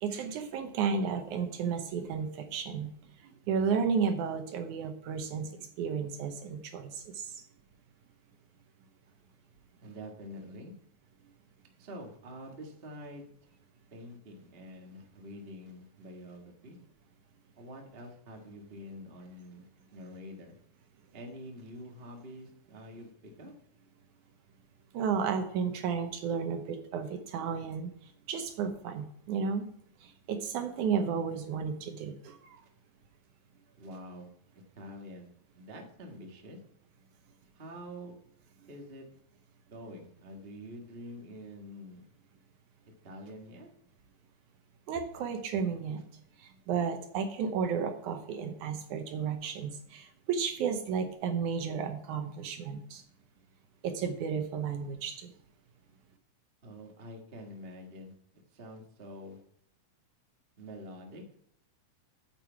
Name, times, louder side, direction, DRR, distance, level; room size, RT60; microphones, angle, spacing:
voice 1, 0.0-2.9 3.2-5.5 5.8-7.4 24.9-29.7 30.0-32.6 44.9-46.0 46.4-53.0 53.8-55.3, right 6 dB, 70° right, 6 dB, 2.1 m, -33 dB
voice 2, 9.8-10.7 11.8-13.3 13.9-16.8 17.6-20.6 21.1-23.5 33.8-34.3 34.5-36.6 37.5-38.1 38.7-39.1 39.7-42.1 42.8-43.7 56.6-59.4 60.6-61.2, equal, 50° right, 1 dB, 0.6 m, -46 dB
9.1 x 8.7 x 4.6 m, 0.69 s
omnidirectional pair, 4.1 m